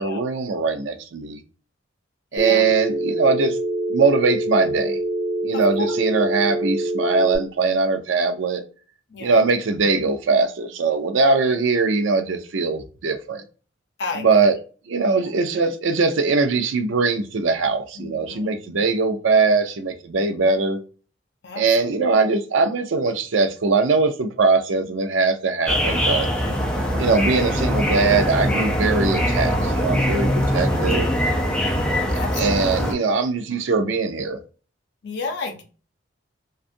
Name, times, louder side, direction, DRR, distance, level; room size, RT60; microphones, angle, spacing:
voice 1, 0.0-1.4 2.3-3.6 3.9-5.0 5.4-8.6 9.2-13.4 14.2-14.6 14.9-20.8 21.6-26.3 26.9-31.1 32.1-34.4, right 4 dB, 80° right, 8 dB, 0.5 m, -21 dB
voice 2, 2.3-2.7 5.5-6.0 9.1-9.4 14.0-14.5 15.1-15.3 17.9-18.7 21.4-22.0 26.3-27.3 30.6-30.9 31.6-31.9 32.1-32.7 35.0-35.6, left 4 dB, 60° left, 5 dB, 0.6 m, -34 dB
Telephone, 2.4-7.4, right 1 dB, 25° right, 1.3 m, -25 dB
sound 1, 25.7-32.9, equal, 5° left, 0.4 m, -22 dB
2.5 x 2.3 x 2.5 m, 0.36 s
head